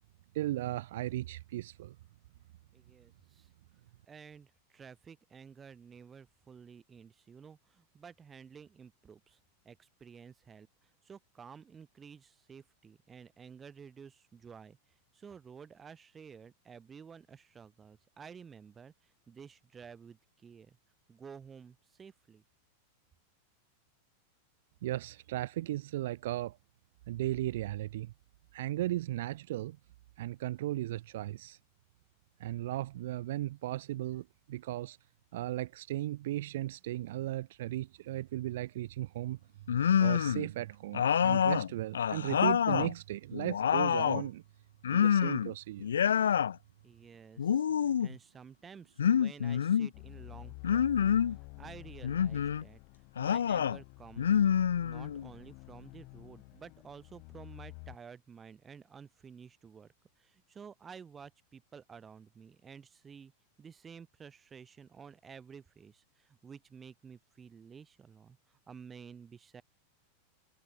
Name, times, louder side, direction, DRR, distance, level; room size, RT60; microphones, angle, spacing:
voice 1, 0.3-1.9 24.8-26.6 27.1-28.1 28.5-29.8 30.2-31.6 32.4-35.0 35.3-39.4 40.0-44.4 44.9-45.9, right 15 dB, 55° right, 3.3 m, -36 dB
voice 2, 2.7-3.5 4.1-9.4 9.6-14.8 15.1-18.9 19.3-20.8 21.1-22.4 46.8-47.7 48.0-51.1 51.6-52.8 53.2-54.3 54.8-59.9 60.2-63.3 63.6-68.4 68.7-69.6, right 6 dB, 20° right, 7.7 m, -52 dB
sound 1, 39.7-40.5 40.9-42.9 43.3-44.3 44.8-45.5 45.8-46.5 47.4-48.2 49.0-49.9 50.6-51.4 52.0-52.6 53.2-53.8 54.2-55.3, left 8 dB, 65° left, 0.4 m, -27 dB
sound 2, 49.9-58.0, left 39 dB, 45° left, 4.9 m, -50 dB
figure-of-eight pair, 90°, 0 cm